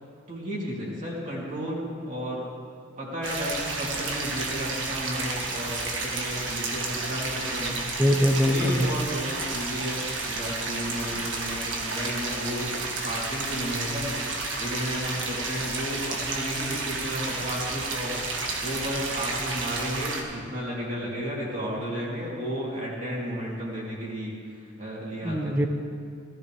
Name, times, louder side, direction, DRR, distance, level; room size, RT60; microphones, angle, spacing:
voice 1, 0.3-2.5 3.0-7.8 8.4-18.2 18.6-25.7, equal, 40° right, -5 dB, 3.3 m, -33 dB
sound 1, 3.2-20.2, right 3 dB, 70° right, 1.7 m, -31 dB
voice 2, 8.0-8.9 25.2-25.7, equal, 10° right, 6 dB, 0.7 m, -22 dB
16.5 x 14.0 x 3.5 m, 2.3 s
head